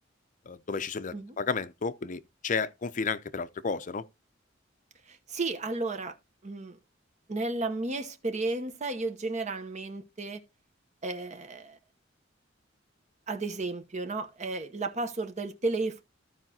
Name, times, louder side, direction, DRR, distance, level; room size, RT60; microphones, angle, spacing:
voice 1, 0.5-4.0, left 5 dB, 40° left, 0.6 m, -32 dB
voice 2, 5.1-6.1 6.4-6.8 7.3-10.4 11.0-11.8 13.3-16.0, right 3 dB, 35° right, 0.9 m, -33 dB
15.0 x 5.0 x 2.8 m
head